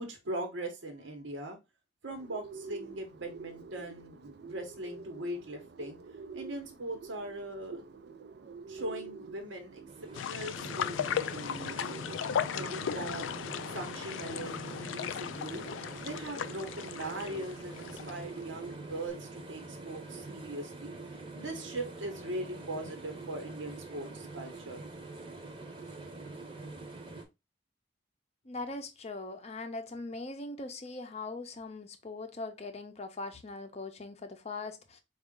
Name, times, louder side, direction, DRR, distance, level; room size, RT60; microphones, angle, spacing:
voice 1, 0.0-1.6 2.0-6.0 6.3-8.1 8.7-9.8 10.1-12.0 12.5-13.4 13.7-14.5 14.8-15.6 16.0-20.9 21.3-24.8, right 1 dB, 85° right, 1.1 m, -40 dB
Bird, 2.1-19.1, right 5 dB, 60° right, 0.4 m, -48 dB
sound 1, 9.9-27.2, right 3 dB, 30° right, 0.8 m, -45 dB
sound 2, 10.1-18.4 18.7-18.8, left 8 dB, 80° left, 0.3 m, -36 dB
voice 2, 28.4-35.0, left 3 dB, 35° left, 0.6 m, -41 dB
4.8 x 2.4 x 3.6 m
head